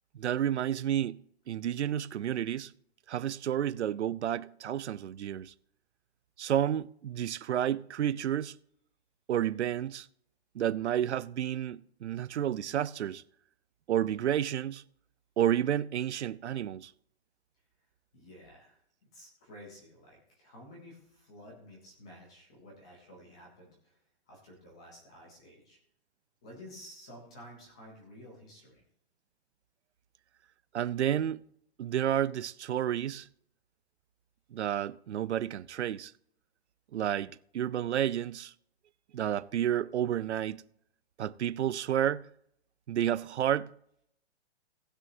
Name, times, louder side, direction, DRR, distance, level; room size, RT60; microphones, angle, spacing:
voice 1, 0.1-2.7 3.1-5.5 6.4-8.5 9.3-10.1 10.5-13.2 13.9-14.8 15.4-16.9 30.7-31.4 31.8-33.3 34.5-36.1 36.9-38.5 39.1-40.6 41.2-42.3 42.9-43.7, right 10 dB, 85° right, 0.6 m, -31 dB
voice 2, 18.1-24.0 24.3-25.8 26.4-28.8, left 1 dB, 5° left, 0.5 m, -52 dB
18.5 x 6.2 x 2.7 m
hypercardioid pair, 175°, 33 cm